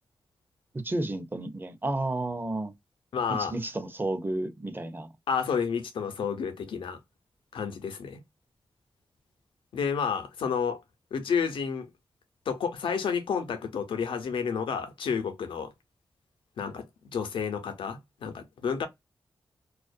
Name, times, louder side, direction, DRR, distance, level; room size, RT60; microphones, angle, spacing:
voice 1, 0.7-2.7 3.3-5.1, right 2 dB, 25° right, 0.7 m, -32 dB
voice 2, 3.1-3.5 5.3-7.0 7.5-8.2 9.7-10.8 11.1-11.9 12.5-15.7 16.6-16.9 17.1-18.9, left 6 dB, 85° left, 0.6 m, -30 dB
2.4 x 2.1 x 2.5 m
cardioid pair, 45°, 8 cm